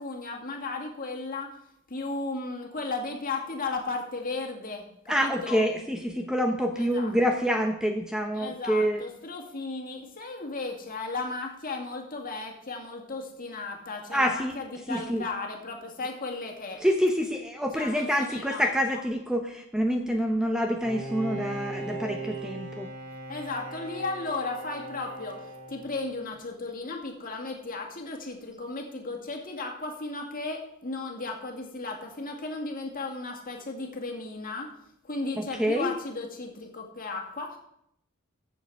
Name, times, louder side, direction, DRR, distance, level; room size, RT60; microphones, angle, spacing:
voice 1, 0.0-1.6 1.9-5.6 6.7-7.1 8.3-16.8 17.8-19.0 23.3-34.7 35.0-37.6, left 3 dB, 40° left, 2 dB, 2.0 m, -35 dB
voice 2, 5.1-9.1 14.1-14.5 14.9-15.2 16.8-22.9 35.4-35.9, equal, 5° right, 4 dB, 0.7 m, -27 dB
Bowed string instrument, 20.8-26.4, right 2 dB, 50° right, 4.4 m, -38 dB
14.5 x 7.3 x 4.7 m, 0.77 s
head